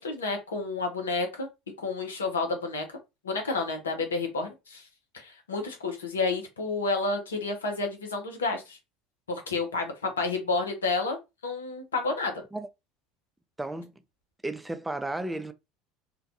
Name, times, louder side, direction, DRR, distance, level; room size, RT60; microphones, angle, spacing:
voice 1, 0.0-1.5 1.8-3.0 3.2-4.9 5.1-8.8 9.3-12.3, left 3 dB, 85° left, 0.7 m, -30 dB
voice 2, 13.6-13.9 14.4-15.5, right 2 dB, 10° right, 0.4 m, -33 dB
2.4 x 2.2 x 2.7 m
hypercardioid pair, 70°, 0 cm